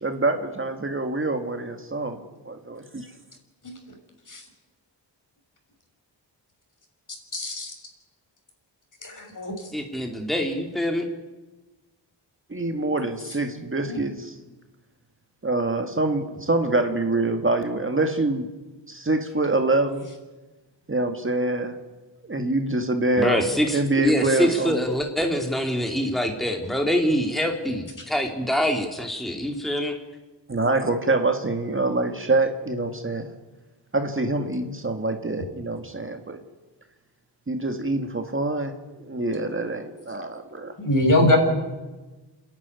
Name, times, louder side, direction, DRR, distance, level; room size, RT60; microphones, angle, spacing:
voice 1, 0.0-2.2 2.5-3.1 12.5-14.3 15.4-18.5 18.9-20.1 20.9-21.8 22.2-24.8 30.5-33.3 33.9-36.4 37.5-40.7, right 2 dB, 30° right, 5 dB, 2.0 m, -25 dB
voice 2, 7.3-7.7 9.0-9.5 13.8-14.0 40.8-41.4, left 1 dB, 45° left, 4 dB, 6.0 m, -22 dB
voice 3, 9.7-11.1 23.2-29.9, equal, ahead, 3 dB, 2.7 m, -25 dB
28.0 x 11.0 x 9.7 m, 1.2 s
cardioid pair, 65°, 44 cm